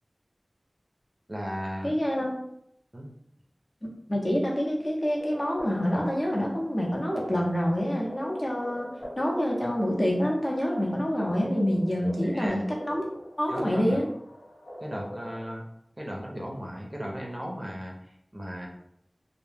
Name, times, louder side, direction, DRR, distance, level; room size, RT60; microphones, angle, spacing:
voice 1, 1.3-1.9 2.9-3.1 12.2-12.7 13.5-14.0 14.8-15.6 16.0-17.9 18.3-18.7, equal, 30° right, -1 dB, 0.5 m, -36 dB
voice 2, 1.8-2.3 4.1-8.9 9.2-13.0 13.4-14.1, equal, 45° left, -2 dB, 0.7 m, -27 dB
sound 1, 5.2-15.5, equal, 75° left, 1.0 m, -44 dB
2.1 x 2.0 x 3.2 m, 0.74 s
wide cardioid pair, 45°, 0 cm